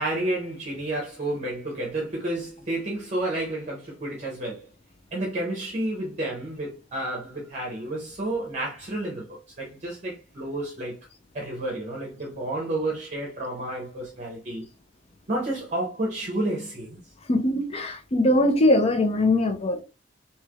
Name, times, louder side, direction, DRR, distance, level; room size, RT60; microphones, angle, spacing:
voice 1, 0.0-4.7 5.1-11.0 11.3-14.6 15.3-17.0, right 1 dB, 40° right, 0.7 m, -30 dB
voice 2, 17.3-19.8, left 1 dB, 35° left, 0.5 m, -21 dB
3.1 x 2.8 x 2.3 m
head